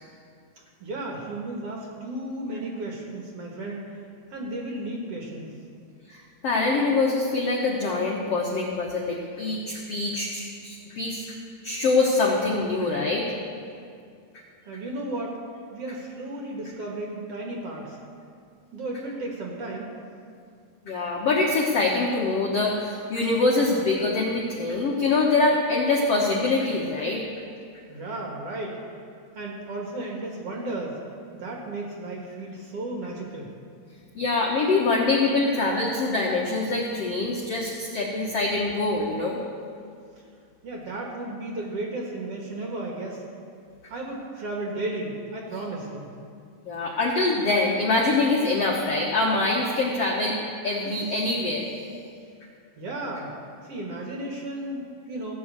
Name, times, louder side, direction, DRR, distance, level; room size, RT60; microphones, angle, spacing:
voice 1, 0.8-3.9 4.3-5.5 14.6-15.4 15.7-18.0 18.7-19.9 27.9-28.8 29.3-31.0 31.3-33.5 40.6-43.2 43.9-46.1 52.8-53.3 53.6-55.3, right 2 dB, 60° right, -1 dB, 1.7 m, -34 dB
voice 2, 6.1-11.3 11.6-13.3 20.8-27.2 34.1-39.4 46.6-50.4 50.6-51.7, left 3 dB, 85° left, -2 dB, 1.3 m, -24 dB
16.0 x 6.3 x 8.1 m, 2.3 s
omnidirectional pair, 4.6 m